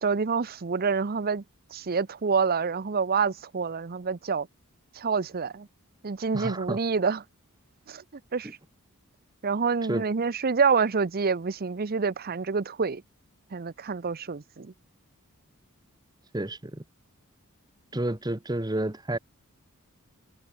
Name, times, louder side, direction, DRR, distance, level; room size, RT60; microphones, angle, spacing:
voice 1, 0.0-1.4 1.7-4.5 4.9-5.7 6.0-7.2 7.9-8.0 8.3-8.5 9.4-13.0 13.5-14.7, right 5 dB, 45° right, 0.6 m, -27 dB
voice 2, 6.3-6.8 8.4-8.5 9.9-10.0 16.3-16.8 17.9-19.2, right 1 dB, 20° right, 1.2 m, -30 dB
head